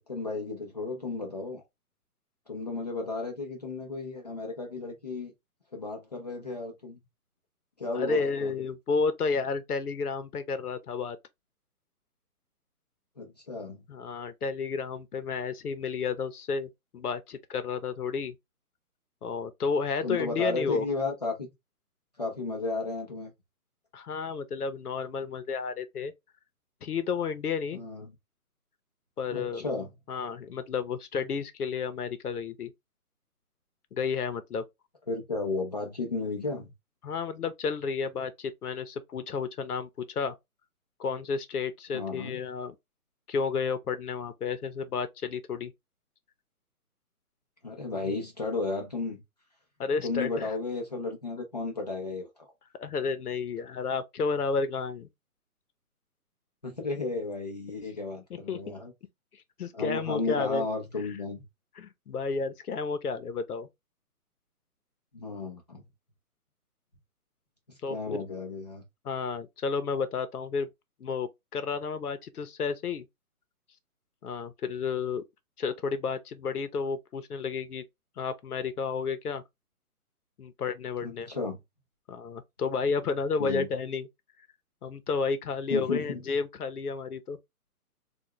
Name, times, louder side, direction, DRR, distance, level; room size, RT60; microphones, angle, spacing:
voice 1, 0.1-1.6 2.5-5.3 5.7-7.0 7.8-8.5 13.2-13.8 20.0-21.5 22.2-23.3 27.7-28.1 29.3-29.9 35.1-36.7 41.9-42.4 47.6-49.2 50.0-52.5 56.6-58.9 59.7-61.4 65.1-65.8 67.7-68.8 81.0-81.6 83.4-83.7 85.7-86.2, left 3 dB, 30° left, 0.6 m, -34 dB
voice 2, 7.9-11.2 13.9-18.4 19.2-20.8 23.9-26.1 26.8-27.8 29.2-29.6 30.1-32.7 33.9-34.6 37.0-40.3 41.0-42.7 43.3-45.7 49.8-50.5 52.8-55.1 58.3-58.7 59.6-60.7 61.8-63.7 67.8-68.3 69.0-70.7 71.0-73.0 74.2-75.2 75.6-77.8 78.2-79.4 80.4-81.3 82.1-84.1 84.8-87.4, left 5 dB, 75° left, 0.8 m, -31 dB
3.4 x 2.4 x 2.8 m
hypercardioid pair, 165°, 46 cm